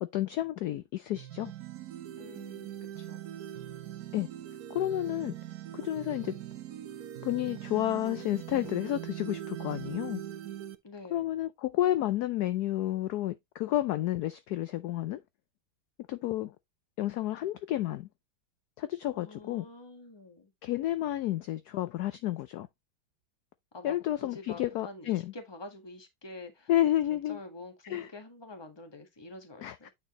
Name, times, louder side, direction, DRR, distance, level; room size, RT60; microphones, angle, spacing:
voice 1, 0.0-1.5 4.1-4.3 4.7-5.3 5.7-6.3 7.2-10.2 11.1-15.2 16.1-16.5 17.0-18.1 18.8-19.7 20.6-22.7 23.8-25.3 26.7-27.4 27.8-28.1 29.6-29.9, left 13 dB, 75° left, 0.9 m, -31 dB
sound 1, 1.1-10.7, right 11 dB, 60° right, 1.1 m, -41 dB
voice 2, 2.2-2.7 3.0-3.3 10.8-11.3 19.1-20.5 23.7-26.7 27.1-29.9, left 2 dB, 15° left, 1.3 m, -47 dB
9.1 x 4.5 x 2.9 m
omnidirectional pair, 2.2 m